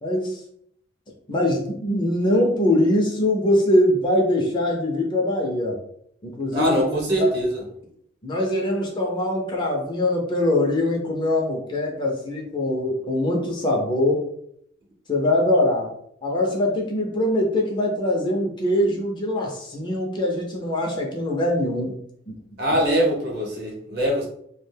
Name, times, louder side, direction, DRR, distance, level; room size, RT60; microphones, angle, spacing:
voice 1, 0.0-0.4 1.3-5.8 6.2-6.8 8.2-14.2 15.1-15.9 16.2-22.0 22.3-22.4, left 1 dB, 25° left, 0 dB, 0.5 m, -22 dB
voice 2, 6.5-7.6 22.6-24.2, equal, 55° right, -1 dB, 0.9 m, -22 dB
2.3 x 2.1 x 3.3 m, 0.70 s
head